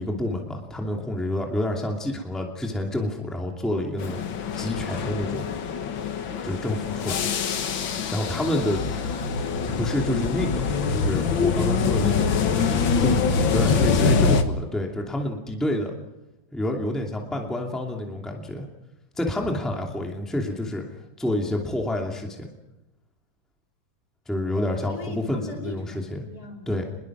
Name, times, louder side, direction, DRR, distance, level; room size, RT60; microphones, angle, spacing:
voice 1, 0.0-4.2 4.6-5.4 6.4-7.2 8.1-8.8 9.8-12.4 13.0-15.9 16.5-18.6 19.2-20.8 21.2-22.5 24.3-26.2 26.7-26.9, left 1 dB, ahead, 1 dB, 2.5 m, -28 dB
sound 1, 4.0-14.4, left 5 dB, 85° left, 2.1 m, -24 dB
voice 2, 8.6-9.5 13.3-14.3 17.3-17.5 18.3-18.7 24.5-26.9, left 2 dB, 50° left, 1 dB, 4.4 m, -39 dB
25.5 x 21.5 x 6.1 m, 0.98 s
omnidirectional pair, 2.0 m